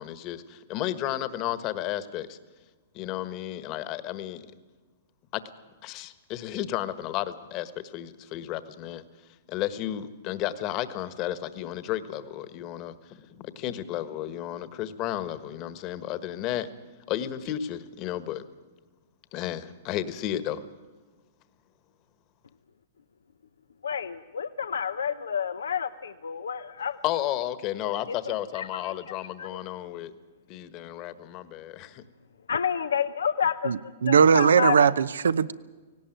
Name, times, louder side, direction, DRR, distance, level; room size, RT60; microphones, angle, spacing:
voice 1, 0.0-2.4 2.9-4.4 5.3-5.4 5.8-9.0 9.5-16.7 17.1-18.4 19.3-20.6 27.0-30.1 30.5-32.0, left 12 dB, 40° left, 1.4 m, -33 dB
voice 2, 23.8-27.0 27.8-28.9 29.4-29.6 32.5-34.9, left 7 dB, 85° left, 0.7 m, -30 dB
voice 3, 33.6-35.5, right 6 dB, 85° right, 0.7 m, -20 dB
18.0 x 17.5 x 9.2 m
hypercardioid pair, 125°, 0 cm